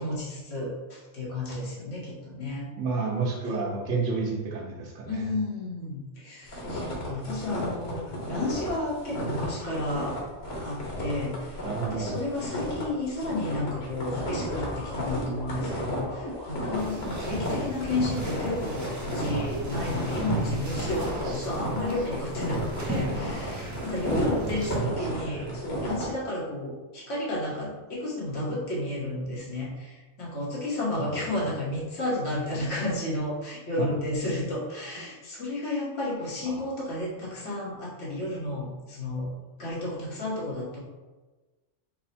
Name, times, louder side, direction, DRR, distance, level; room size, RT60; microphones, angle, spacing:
voice 1, 0.0-2.7 5.1-10.2 10.6-39.3 39.6-40.8, left 2 dB, 80° left, -6 dB, 1.6 m, -32 dB
voice 2, 2.8-5.3 11.6-12.2 21.0-21.8 24.7-24.9 25.3-25.5 33.8-33.9 36.5-36.6, right 4 dB, 80° right, 0 dB, 1.1 m, -31 dB
sound 1, 6.4-26.0, equal, 60° left, 1.3 m, -34 dB
sound 2, 14.1-17.2, left 1 dB, 25° left, 0.7 m, -37 dB
sound 3, 16.8-24.8, right 1 dB, 25° right, 0.4 m, -35 dB
4.5 x 2.1 x 4.1 m, 1.2 s
omnidirectional pair, 1.2 m